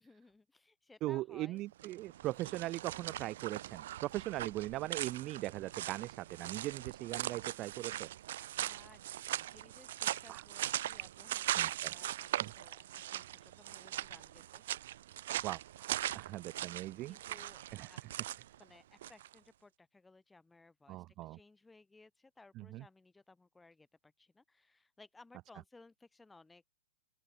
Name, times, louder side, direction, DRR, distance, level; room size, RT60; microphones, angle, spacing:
voice 1, 0.0-1.6 8.6-14.6 16.8-18.0 18.6-26.6, left 3 dB, 5° left, 3.0 m, -61 dB
voice 2, 1.0-8.1 10.3-10.4 11.5-11.9 12.4-12.5 15.4-15.9 16.1-17.5 17.7-17.9 20.9-21.4 22.6-22.8, right 17 dB, 30° right, 0.3 m, -40 dB
sound 1, 1.7-19.3, right 13 dB, 60° right, 1.4 m, -40 dB
open air
hypercardioid pair, 125°, 0 cm